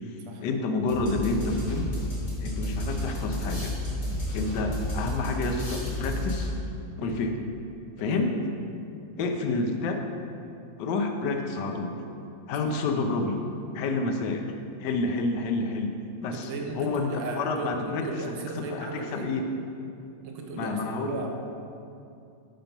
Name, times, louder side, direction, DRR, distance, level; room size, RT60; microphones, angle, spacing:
voice 1, 0.4-1.9 2.4-3.7 4.3-6.5 7.0-7.3 8.0-8.3 9.2-10.0 10.8-11.9 12.5-13.4 13.7-14.5 14.8-15.9 16.2-16.5 16.8-18.2 18.6-19.5 20.5-21.3, left 3 dB, 70° left, 4 dB, 1.2 m, -29 dB
sound 1, 0.9-6.7, left 1 dB, 35° left, 1.9 m, -31 dB
voice 2, 16.3-19.3 20.2-21.3, right 3 dB, 85° right, 1 dB, 1.6 m, -36 dB
5.9 x 5.5 x 5.2 m, 2.6 s
omnidirectional pair, 2.2 m